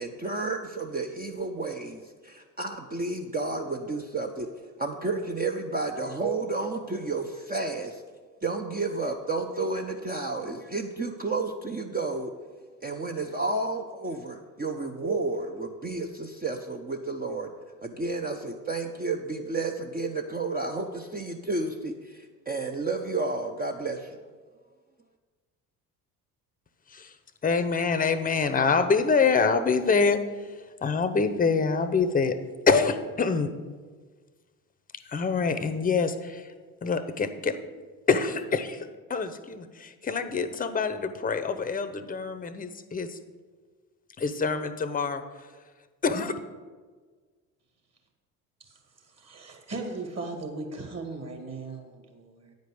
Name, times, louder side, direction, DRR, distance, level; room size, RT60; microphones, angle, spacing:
voice 1, 0.0-8.0 8.4-12.3 12.8-17.5 17.8-24.2, right 3 dB, 20° right, 2 dB, 0.7 m, -31 dB
voice 2, 27.4-30.5 30.8-32.4 32.7-33.5 35.1-36.5 36.8-37.6 38.1-43.2 44.2-45.2 46.0-46.4, left 5 dB, 20° left, 10 dB, 0.8 m, -26 dB
voice 3, 49.2-52.5, right 3 dB, 35° right, 3 dB, 2.3 m, -38 dB
9.3 x 5.2 x 7.7 m, 1.5 s
hypercardioid pair, 65°, 44 cm